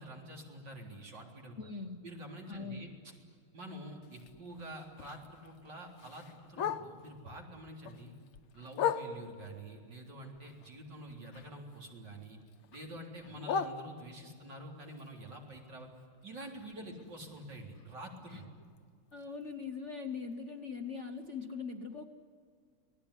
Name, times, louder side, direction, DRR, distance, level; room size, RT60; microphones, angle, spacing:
voice 1, 0.0-1.7 2.0-3.1 3.5-8.1 8.5-12.4 12.7-15.9 16.2-18.5, right 1 dB, 55° right, 0 dB, 4.4 m, -47 dB
voice 2, 1.6-2.0 2.5-2.8 18.3-18.4 19.1-22.1, left 5 dB, 45° left, 5 dB, 1.1 m, -41 dB
Bark, 4.0-7.2 7.6-9.5 10.0-11.8 12.1-14.4 14.9-18.8 19.1-19.2 19.5-19.9 20.3-20.4 20.8-20.9 21.4-21.5, left 7 dB, 80° left, 1.8 m, -40 dB
28.0 x 19.0 x 9.9 m, 2.2 s
omnidirectional pair, 2.3 m